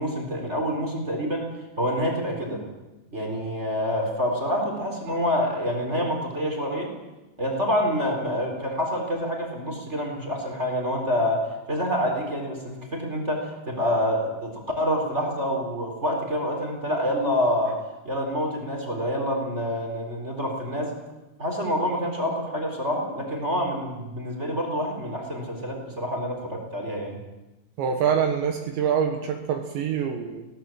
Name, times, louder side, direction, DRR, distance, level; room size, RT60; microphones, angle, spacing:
voice 1, 0.0-1.4 1.8-2.6 3.1-6.9 7.4-11.4 11.7-17.8 18.0-20.9 21.4-27.2, equal, 15° right, 1 dB, 4.0 m, -27 dB
voice 2, 27.8-30.5, right 7 dB, 70° right, 4 dB, 3.4 m, -25 dB
21.5 x 18.0 x 7.6 m, 1.0 s
omnidirectional pair, 5.7 m